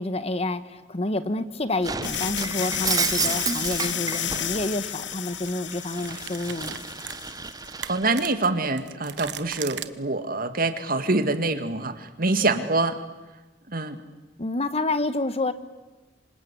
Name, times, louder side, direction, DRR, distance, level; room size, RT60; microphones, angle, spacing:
voice 1, 0.0-6.8 14.4-15.5, left 2 dB, 35° left, 12 dB, 1.2 m, -28 dB
Shatter, 1.8-4.7 5.1-8.3, right 5 dB, 20° right, 0.9 m, -31 dB
sound 1, 2.0-7.7, left 9 dB, 75° left, 1.4 m, -32 dB
sound 2, 3.5-3.6 4.9-5.1 5.5-5.6 6.1-9.9, right 9 dB, 70° right, 1.2 m, -38 dB
voice 2, 7.9-13.0 13.7-14.0, right 3 dB, 50° right, 9 dB, 2.2 m, -25 dB
27.0 x 26.0 x 8.4 m, 1.1 s
head